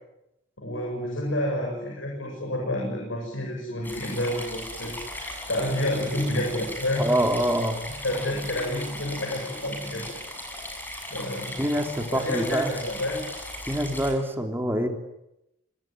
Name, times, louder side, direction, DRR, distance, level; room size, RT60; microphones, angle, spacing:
voice 1, 0.6-7.0 8.0-10.2 11.1-11.6 12.1-13.2, left 1 dB, 75° left, 0 dB, 7.8 m, -29 dB
sound 1, 3.8-14.1, left 1 dB, 10° left, 7.5 m, -37 dB
voice 2, 7.0-7.8 11.6-12.7 13.7-14.9, right 1 dB, 10° right, 4 dB, 3.4 m, -25 dB
26.0 x 20.5 x 9.5 m, 0.86 s
head